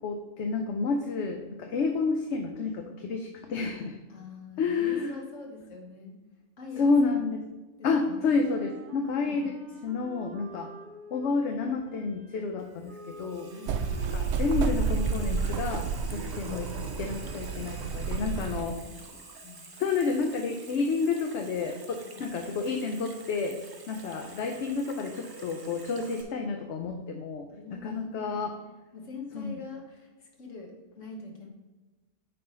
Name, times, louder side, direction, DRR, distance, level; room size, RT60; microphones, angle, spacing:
voice 1, 0.0-4.0 4.6-5.2 6.8-7.4 7.8-9.5 9.8-10.7 11.1-13.5 14.1-16.7 17.0-18.8 19.8-23.6 23.9-27.5 27.8-28.5 29.3-29.5, left 4 dB, 70° left, 4 dB, 0.9 m, -30 dB
voice 2, 4.1-6.2 6.6-7.2 7.8-8.3 9.3-9.5 13.5-13.9 18.4-19.6 22.0-22.3 27.5-28.4 28.9-31.5, left 4 dB, 90° left, 1 dB, 1.7 m, -45 dB
Wind instrument woodwind instrument, 8.3-16.4, right 2 dB, 45° right, 0.8 m, -48 dB
Water tap faucet / Sink (filling or washing), 12.6-26.2, right 3 dB, 30° right, 0.5 m, -48 dB
sound 1, 13.7-18.7, right 5 dB, 90° right, 1.0 m, -30 dB
8.7 x 3.4 x 5.3 m, 1.2 s
omnidirectional pair, 1.3 m